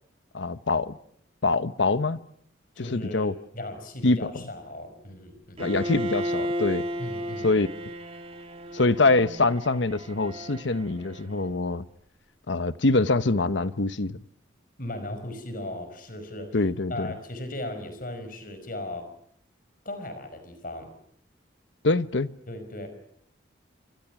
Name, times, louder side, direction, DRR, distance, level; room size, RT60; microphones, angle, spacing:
voice 1, 0.3-1.0 1.4-2.2 2.8-3.3 4.0-4.4 5.6-6.8 7.4-7.7 8.7-11.9 12.5-14.2 16.5-17.1 21.8-22.3, left 3 dB, 70° left, 1.0 m, -24 dB
voice 2, 2.8-5.6 7.0-7.5 14.8-16.6 16.9-19.1 19.9-20.9 22.5-22.9, left 1 dB, 45° left, 5.3 m, -37 dB
Bowed string instrument, 5.6-11.6, equal, 30° right, 2.0 m, -34 dB
28.5 x 26.0 x 6.0 m
head